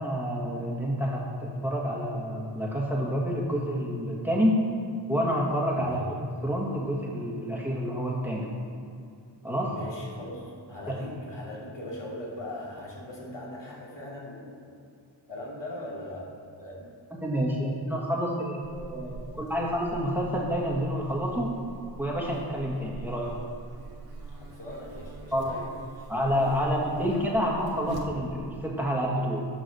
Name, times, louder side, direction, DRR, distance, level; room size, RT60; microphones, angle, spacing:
voice 1, 0.0-4.6 5.1-6.0 6.4-8.6 9.4-9.7 17.2-21.5 22.0-23.3 25.3-25.6 26.1-29.4, equal, 5° right, -3 dB, 1.5 m, -28 dB
voice 2, 9.6-14.8 15.3-16.3 16.6-16.9 24.3-25.7 26.5-27.1, left 1 dB, 70° left, -4 dB, 2.5 m, -40 dB
Buzz, 18.6-28.6, right 3 dB, 55° right, 1.3 m, -42 dB
9.5 x 6.2 x 6.4 m, 2.4 s
wide cardioid pair, 135°, 45 cm